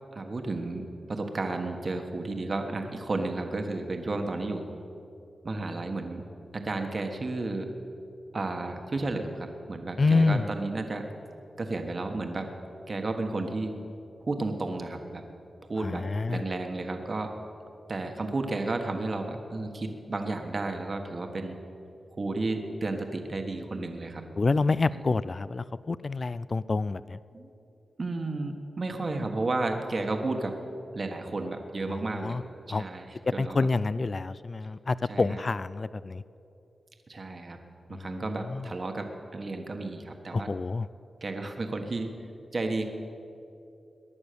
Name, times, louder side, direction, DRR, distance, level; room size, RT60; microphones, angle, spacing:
voice 1, 0.1-4.6 5.4-6.2 6.5-7.7 8.3-11.1 11.6-12.5 12.9-13.7 14.3-15.2 15.7-17.4 17.9-21.6 22.2-24.2 24.9-25.0 27.3-27.5 28.0-30.6 30.9-33.7 35.1-35.4 37.1-37.6 37.9-40.5 41.2-42.1 42.5-42.8, right 2 dB, 45° right, 4 dB, 1.4 m, -32 dB
voice 2, 10.0-10.5 15.8-16.4 24.4-27.2 31.9-32.4 32.7-32.8 33.4-36.2 37.9-38.2 38.4-38.7 40.3-40.9, left 3 dB, 45° left, 17 dB, 0.4 m, -27 dB
19.5 x 10.5 x 6.9 m, 2.7 s
cardioid pair, 75°, 0 cm